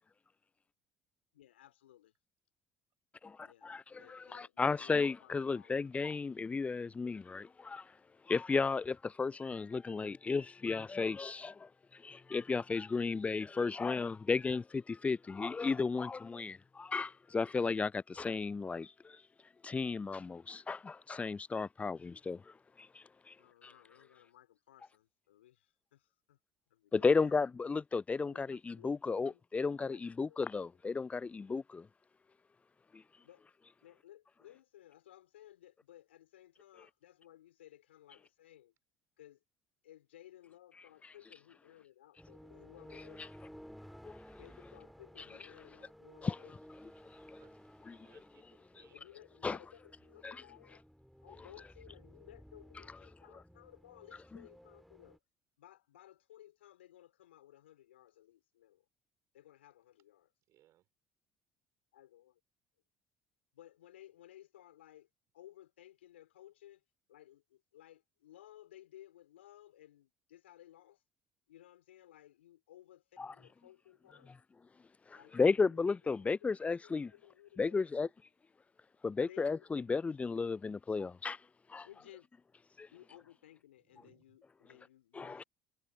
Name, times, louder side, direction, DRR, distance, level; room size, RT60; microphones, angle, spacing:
voice 1, 1.3-2.1 3.4-6.0 23.4-26.4 26.7-27.3 28.2-29.4 29.8-30.7 33.2-33.4 33.8-38.7 39.2-39.4 39.8-43.3 44.4-46.5 48.9-50.8 51.2-55.2 55.6-58.8 59.3-60.3 61.9-62.4 63.5-65.1 65.3-66.8 67.1-71.0 71.5-74.3 75.1-75.8 76.4-76.5 76.8-78.1 79.2-80.6 81.8-82.3 82.9-85.5, left 13 dB, 80° left, 3.2 m, -59 dB
voice 2, 3.2-7.9 8.2-19.2 19.6-23.4 23.6-23.7 26.9-31.9 32.9-33.0 42.9-43.0 44.0-44.2 46.2-46.4 47.0-47.4 47.8-48.1 48.8-48.9 49.4-49.6 50.2-50.4 54.3-54.4 73.2-73.3 75.1-77.1 77.6-78.1 79.0-81.4 81.7-81.9 82.8-82.9 85.1-85.4, left 4 dB, 20° left, 0.5 m, -34 dB
sound 1, 42.2-55.2, equal, ahead, 2.6 m, -56 dB
voice 3, 47.9-49.0 60.5-60.9 83.8-84.4, right 14 dB, 55° right, 5.3 m, -67 dB
figure-of-eight pair, 60°, 6 cm